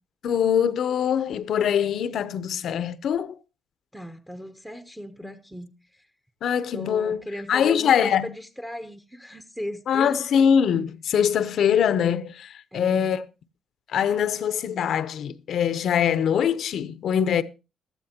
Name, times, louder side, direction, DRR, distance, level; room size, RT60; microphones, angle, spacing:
voice 1, 0.2-3.4 5.2-5.3 6.4-7.2 7.5-8.3 9.9-13.2 13.9-17.4, left 8 dB, 65° left, 0.7 m, -23 dB
voice 2, 3.9-6.1 6.7-10.2 12.7-13.1, equal, 5° right, 0.8 m, -37 dB
16.5 x 12.5 x 2.8 m
cardioid pair, 95°, 0 cm